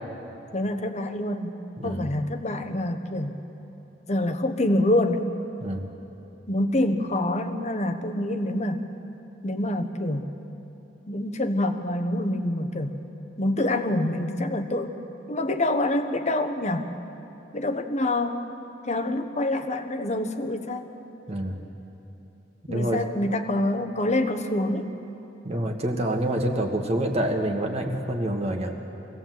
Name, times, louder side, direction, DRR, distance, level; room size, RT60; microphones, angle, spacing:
voice 1, 0.5-1.5 1.8-3.3 4.1-5.3 6.5-8.9 9.4-10.3 11.1-12.9 13.4-15.0 15.3-16.9 17.5-18.4 18.9-20.9 22.7-25.0, left 1 dB, 40° left, 7 dB, 1.2 m, -26 dB
voice 2, 1.8-2.1 5.6-5.9 21.3-21.6 22.7-23.0 25.4-28.8, right 1 dB, 35° right, 2 dB, 1.5 m, -27 dB
24.0 x 17.0 x 7.6 m, 3.0 s
head